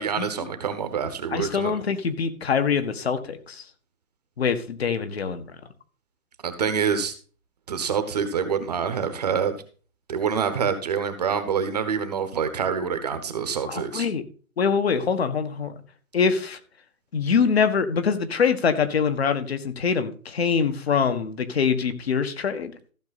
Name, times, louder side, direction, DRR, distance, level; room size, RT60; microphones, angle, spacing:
voice 1, 0.0-1.8 6.4-7.1 7.7-9.6 10.1-14.1, right 6 dB, 30° right, 10 dB, 1.1 m, -26 dB
voice 2, 1.3-3.6 4.4-5.4 13.6-14.2 14.6-15.7 16.1-16.6 17.1-22.7, left 6 dB, 45° left, 9 dB, 1.6 m, -24 dB
14.5 x 6.4 x 4.1 m, 0.40 s
figure-of-eight pair, 155°, 42 cm